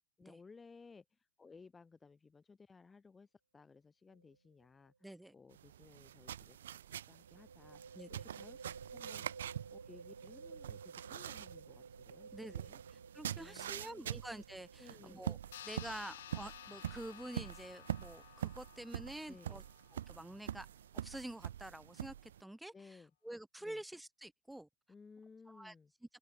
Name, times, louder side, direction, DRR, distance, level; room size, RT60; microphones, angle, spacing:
voice 1, 0.2-4.9 5.3-6.6 6.9-8.6 8.9-12.8 13.3-14.2 14.8-15.2 19.3-19.6 22.7-23.1 23.6-23.8 24.9-25.9, left 4 dB, 15° left, 2.0 m, -59 dB
sound 1, 4.1-4.4 4.6-4.7 7.2-18.6, right 5 dB, 85° right, 2.6 m, -55 dB
voice 2, 5.0-5.3 8.0-8.1 12.3-15.4 15.7-19.6 20.1-20.7 20.9-24.7 25.5-25.7, right 1 dB, 5° right, 0.7 m, -48 dB
sound 2, 5.5-22.4, right 10 dB, 70° right, 0.6 m, -45 dB
sound 3, 15.5-20.4, left 12 dB, 65° left, 1.8 m, -54 dB
open air
hypercardioid pair, 105°, 0 cm